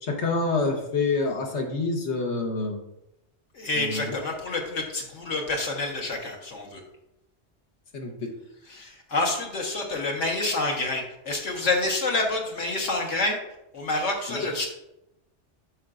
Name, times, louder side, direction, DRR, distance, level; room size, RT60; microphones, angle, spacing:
voice 1, 0.0-2.8 3.7-4.2 7.9-8.3 14.3-14.5, left 3 dB, 70° left, 2 dB, 1.4 m, -27 dB
voice 2, 3.5-6.8 8.7-13.4 13.7-14.7, left 2 dB, 90° left, 1 dB, 1.7 m, -28 dB
9.6 x 5.9 x 2.5 m, 0.88 s
omnidirectional pair, 1.2 m